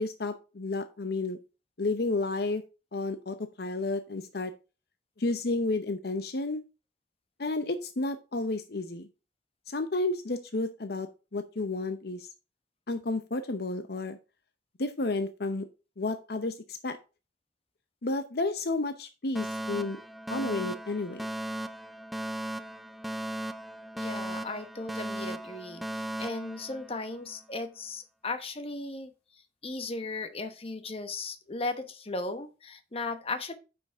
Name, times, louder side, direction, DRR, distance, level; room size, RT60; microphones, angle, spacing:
voice 1, 0.0-1.4 1.8-2.6 2.9-4.5 5.2-6.6 7.4-9.1 9.7-12.3 12.9-14.2 14.8-15.7 16.0-17.0 18.0-20.0 20.3-21.2, left 2 dB, 60° left, 9 dB, 0.7 m, -31 dB
Alarm, 19.3-27.4, right 1 dB, ahead, 0.5 m, -37 dB
voice 2, 23.9-33.5, left 3 dB, 35° left, 9 dB, 1.1 m, -37 dB
9.1 x 6.1 x 3.5 m, 0.30 s
head